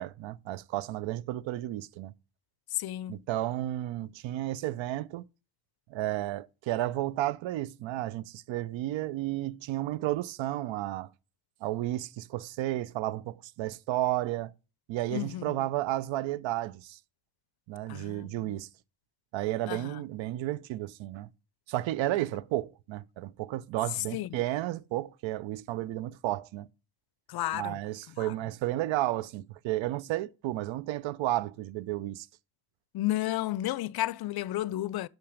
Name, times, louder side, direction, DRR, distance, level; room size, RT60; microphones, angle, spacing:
voice 1, 0.0-2.1 3.1-5.2 5.9-11.1 11.6-14.5 14.9-17.0 17.7-18.7 19.3-21.3 21.7-26.7 27.5-32.3, right 15 dB, 70° right, 0.6 m, -32 dB
voice 2, 2.7-3.2 15.1-15.6 17.9-18.6 19.7-20.0 24.1-24.3 27.3-27.8 28.2-28.3 32.9-35.1, left 15 dB, 55° left, 0.5 m, -32 dB
5.8 x 5.5 x 5.1 m
supercardioid pair, 60°, 47 cm